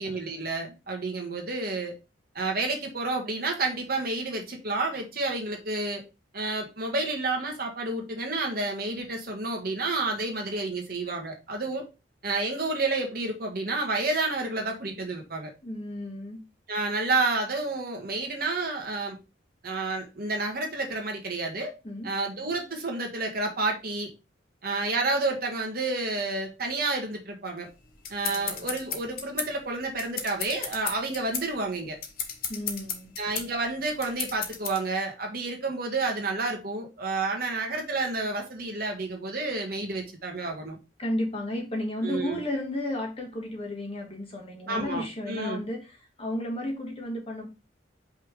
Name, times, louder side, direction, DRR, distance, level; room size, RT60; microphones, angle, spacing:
voice 1, 0.0-1.9 2.3-6.0 6.3-11.8 12.2-15.5 16.7-19.2 19.6-21.7 22.0-24.1 24.6-27.7 28.1-32.0 33.2-40.8 42.0-42.4 44.7-45.6, right 3 dB, 50° right, 1.6 m, -30 dB
voice 2, 15.6-16.4 21.8-22.1 28.2-28.5 32.5-33.1 41.0-47.5, left 1 dB, 30° left, 1.6 m, -33 dB
sound 1, 27.7-34.8, left 7 dB, 50° left, 1.0 m, -34 dB
5.4 x 3.5 x 4.9 m
head